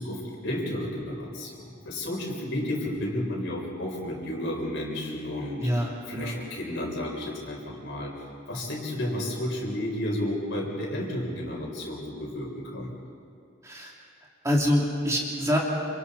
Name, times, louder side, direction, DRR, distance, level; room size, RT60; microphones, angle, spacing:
voice 1, 0.0-8.1 8.5-12.9, left 1 dB, 60° left, -2 dB, 5.6 m, -32 dB
voice 2, 5.6-6.4 13.6-13.9 14.4-15.6, equal, 15° right, -3 dB, 3.1 m, -25 dB
29.0 x 28.0 x 4.3 m, 2.4 s
head